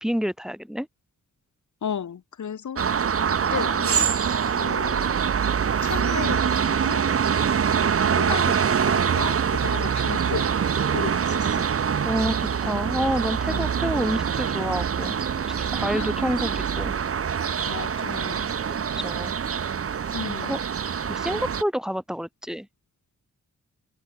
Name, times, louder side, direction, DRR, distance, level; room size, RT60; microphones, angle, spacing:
voice 1, 0.0-0.9 12.0-15.2 15.7-16.9 18.7-19.3 20.4-20.6 21.0-22.7, equal, ahead, 3.1 m, -28 dB
voice 2, 1.8-4.1 4.5-5.2 5.8-7.0 8.1-10.5 10.9-11.7 13.5-13.8 15.9-16.1 17.7-18.5 20.1-20.6, left 8 dB, 75° left, 2.4 m, -34 dB
sound 1, 2.8-21.6, right 7 dB, 50° right, 0.9 m, -24 dB
open air
wide cardioid pair, 90°, 30 cm